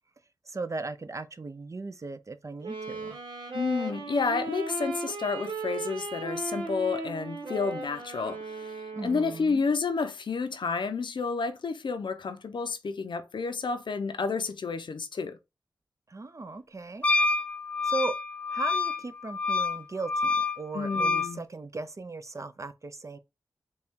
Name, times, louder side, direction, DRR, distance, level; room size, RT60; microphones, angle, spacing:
voice 1, 0.5-3.2 8.9-9.6 16.1-17.1 17.8-18.2 18.5-23.2, right 3 dB, 40° right, 0.5 m, -37 dB
Wind instrument woodwind instrument, 2.6-9.5, right 3 dB, 85° right, 1.0 m, -36 dB
voice 2, 3.5-15.4 20.7-21.4, left 4 dB, 70° left, 0.6 m, -30 dB
Wind instrument woodwind instrument 2, 17.0-21.3, left 3 dB, 15° left, 0.4 m, -27 dB
4.2 x 2.3 x 3.6 m
cardioid pair, 50°, 8 cm